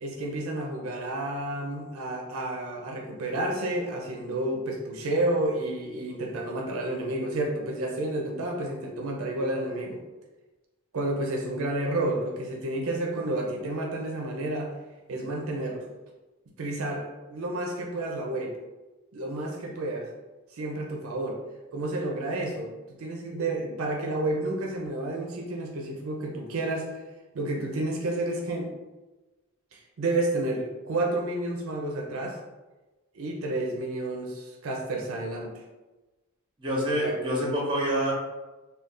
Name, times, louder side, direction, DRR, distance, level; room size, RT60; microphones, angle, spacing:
voice 1, 0.0-10.0 10.9-14.7 15.1-15.9 16.6-18.5 19.1-20.1 20.5-21.4 21.7-22.7 23.0-27.0 27.3-28.7 29.7-32.4 33.1-35.5 37.0-37.2, right 2 dB, 75° right, 0 dB, 0.5 m, -30 dB
voice 2, 36.6-38.1, equal, 20° right, -3 dB, 0.7 m, -26 dB
2.4 x 2.3 x 3.6 m, 1.1 s
head